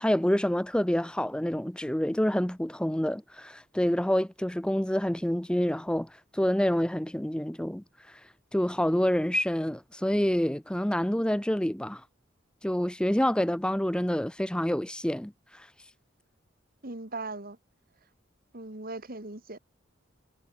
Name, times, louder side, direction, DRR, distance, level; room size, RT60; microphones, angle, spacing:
voice 1, 0.0-8.2 8.5-12.0 12.6-15.7, equal, 5° left, 0.6 m, -27 dB
voice 2, 16.8-17.6 18.5-19.6, right 2 dB, 45° right, 2.5 m, -39 dB
head